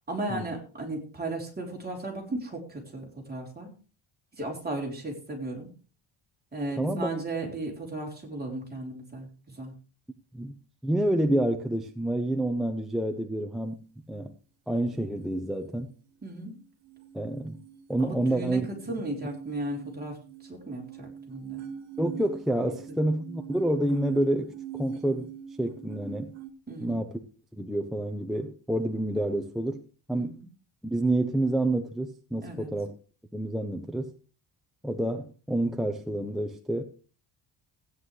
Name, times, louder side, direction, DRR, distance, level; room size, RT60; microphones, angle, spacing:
voice 1, 0.1-3.7 4.3-5.7 6.5-9.7 16.2-16.6 18.0-20.2 20.4-21.6 22.9-23.0 26.7-27.0 30.1-30.5 32.4-32.7, right 2 dB, 20° right, 3.7 m, -35 dB
voice 2, 6.8-7.1 10.3-10.5 10.8-13.8 14.1-14.3 14.7-15.9 17.1-17.6 17.9-18.6 22.0-25.3 25.6-26.3 26.8-27.1 27.5-29.8 30.1-30.4 30.8-32.9 33.3-34.1 34.8-36.8, right 1 dB, ahead, 0.8 m, -28 dB
sound 1, 16.8-26.5, right 9 dB, 70° right, 1.7 m, -43 dB
16.0 x 9.4 x 3.3 m
cardioid pair, 145°, 50 cm